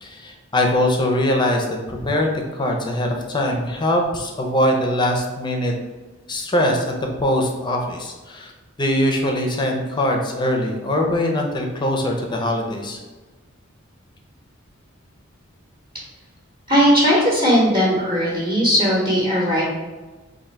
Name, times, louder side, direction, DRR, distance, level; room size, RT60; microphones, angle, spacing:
voice 1, 0.0-5.7 6.3-6.9 7.2-8.5 8.8-13.0, left 1 dB, 20° left, 1 dB, 0.6 m, -22 dB
voice 2, 16.7-19.6, equal, 25° right, -6 dB, 1.0 m, -18 dB
3.8 x 2.6 x 4.4 m, 1.2 s
head